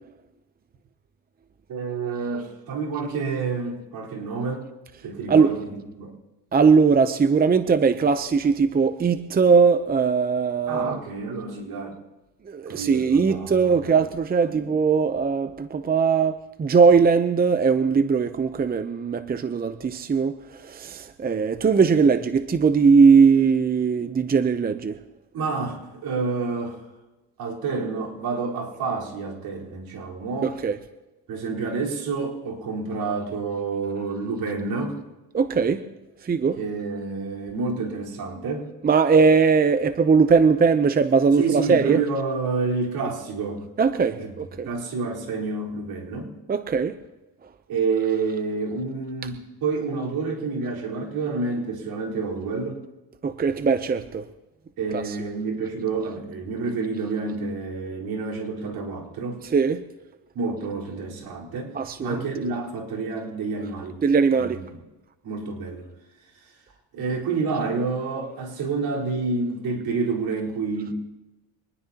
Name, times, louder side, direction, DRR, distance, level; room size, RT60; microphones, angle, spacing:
voice 1, 1.7-4.6 5.0-6.1 10.7-11.9 12.7-14.0 14.5-14.6 25.3-26.9 27.4-30.5 31.3-35.0 36.6-38.7 41.4-43.7 44.2-46.3 47.7-52.8 54.8-59.4 60.3-61.7 62.0-64.0 64.3-64.8 65.2-65.9 66.4-66.6 66.9-70.9, right 4 dB, 70° right, 4.4 m, -29 dB
voice 2, 6.5-11.0 12.5-25.0 30.4-30.8 35.3-35.9 36.2-36.6 38.8-42.0 43.8-44.7 46.5-47.0 53.2-54.2 54.9-55.2 59.5-59.8 61.7-62.2 64.0-64.6, right 5 dB, 25° right, 0.7 m, -20 dB
24.5 x 19.5 x 2.9 m
cardioid pair, 95°, 38 cm